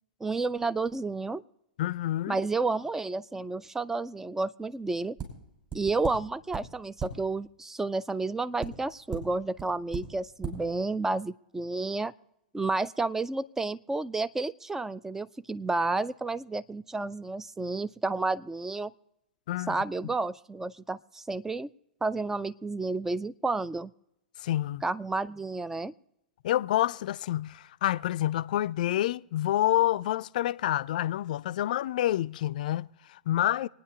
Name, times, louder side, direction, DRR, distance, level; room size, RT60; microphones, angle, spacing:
voice 1, 0.2-1.4 2.3-5.2 5.7-12.1 12.5-18.9 19.7-21.7 22.0-23.9 24.8-25.9, right 3 dB, 10° right, 0.3 m, -31 dB
voice 2, 1.8-2.4 19.5-19.8 24.4-24.8 26.4-33.7, left 13 dB, 60° left, 0.4 m, -28 dB
sound 1, 5.2-5.3 5.7-6.1 6.5-6.6 7.0-7.1 8.6-8.7 9.1-9.2 9.6-9.7 9.9-10.0 10.4-10.5, right 8 dB, 35° right, 5.4 m, -35 dB
26.0 x 9.4 x 2.9 m
hypercardioid pair, 110°, 5 cm